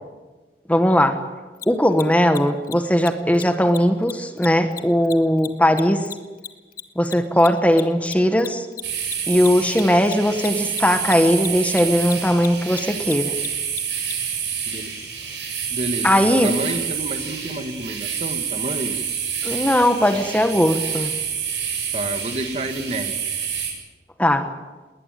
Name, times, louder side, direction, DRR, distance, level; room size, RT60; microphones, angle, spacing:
voice 1, 0.7-1.2 1.7-6.1 7.0-8.7 9.3-13.3 16.0-16.5 19.4-21.1 24.2-24.5, equal, 10° left, 7 dB, 1.3 m, -18 dB
Mechanisms, 1.6-1.7 1.9-2.0 2.3-2.4 2.6-2.7 3.0-3.1 3.3-3.4 3.7-3.8 4.1-6.8 7.1-14.1, left 11 dB, 55° left, 1.5 m, -34 dB
sound 1, 8.8-23.7, right 7 dB, 90° right, 7.7 m, -28 dB
voice 2, 15.7-18.9 21.9-23.1, right 1 dB, 35° right, 8 dB, 1.7 m, -29 dB
21.0 x 20.0 x 9.1 m, 1.3 s
head